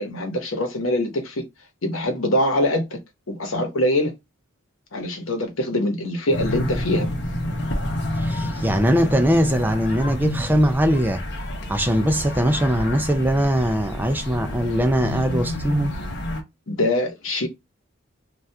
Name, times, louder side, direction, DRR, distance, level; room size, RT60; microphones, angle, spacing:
voice 1, 0.0-1.4 1.8-3.0 3.3-4.1 4.9-7.1 16.7-17.5, left 1 dB, 80° left, 0.9 m, -23 dB
sound 1, 6.3-16.4, left 1 dB, 55° left, 0.7 m, -29 dB
voice 2, 8.1-11.2 11.7-15.9, equal, 10° right, 0.3 m, -21 dB
2.7 x 2.4 x 3.3 m
head